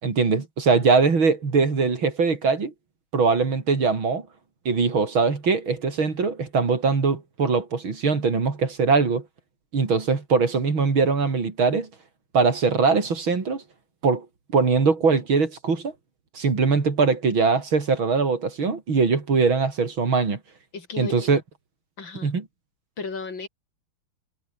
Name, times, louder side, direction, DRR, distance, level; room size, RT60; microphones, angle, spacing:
voice 1, 0.0-2.7 3.1-4.3 4.7-9.3 9.7-11.9 12.3-13.6 14.0-14.3 14.5-15.9 16.3-20.4 21.0-21.4 22.2-22.4, right 4 dB, 80° right, 4.3 m, -21 dB
voice 2, 20.7-21.3 22.0-22.3 23.0-23.5, left 4 dB, 70° left, 4.2 m, -34 dB
omnidirectional pair, 2.2 m